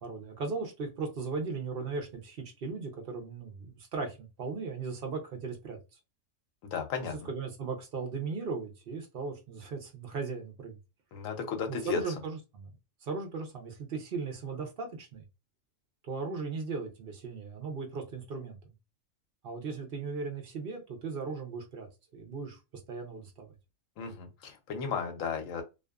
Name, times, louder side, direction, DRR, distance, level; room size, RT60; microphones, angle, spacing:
voice 1, 0.0-5.8 7.0-10.8 11.7-12.7 13.0-15.2 16.0-18.6 19.4-21.9 22.1-22.6 22.9-23.5, right 4 dB, 50° right, 0.8 m, -37 dB
voice 2, 6.6-7.1 11.1-12.0 24.0-25.6, left 6 dB, 75° left, 1.0 m, -34 dB
2.5 x 2.4 x 2.3 m
omnidirectional pair, 1.4 m